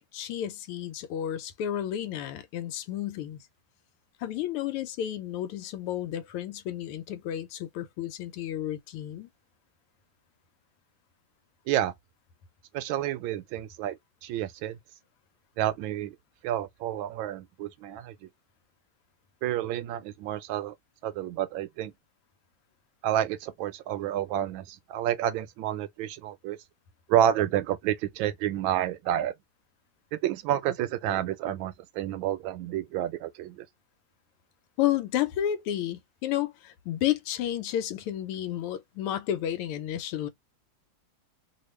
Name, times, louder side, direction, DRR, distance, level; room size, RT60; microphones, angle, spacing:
voice 1, 0.1-3.4 4.2-9.3 34.8-40.3, left 11 dB, 85° left, 1.6 m, -31 dB
voice 2, 12.7-14.8 15.6-16.2 16.4-18.3 19.4-20.7 21.0-21.9 23.0-26.6 27.1-29.3 30.2-33.7, right 11 dB, 75° right, 1.3 m, -29 dB
3.4 x 2.4 x 3.1 m
omnidirectional pair, 2.4 m